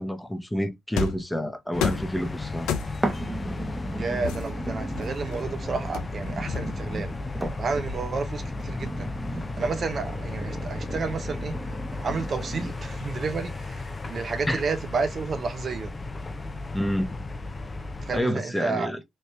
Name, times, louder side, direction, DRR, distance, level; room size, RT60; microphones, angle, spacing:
voice 1, 0.0-2.7 14.5-14.6 16.7-17.2 18.1-19.0, equal, 10° left, 0.9 m, -28 dB
sound 1, 1.0-1.3 1.8-2.2 2.7-3.2 4.2-5.4 5.9-7.0, left 6 dB, 85° left, 0.5 m, -31 dB
sound 2, 1.7-18.2, left 2 dB, 35° left, 0.6 m, -35 dB
sound 3, 3.0-13.0 13.6-13.7, right 2 dB, 20° right, 0.9 m, -36 dB
voice 2, 4.0-7.2 7.6-9.1 9.6-11.6 12.0-15.9 18.0-18.9, right 4 dB, 55° right, 0.7 m, -31 dB
3.2 x 2.6 x 3.2 m
hypercardioid pair, 45°, 0 cm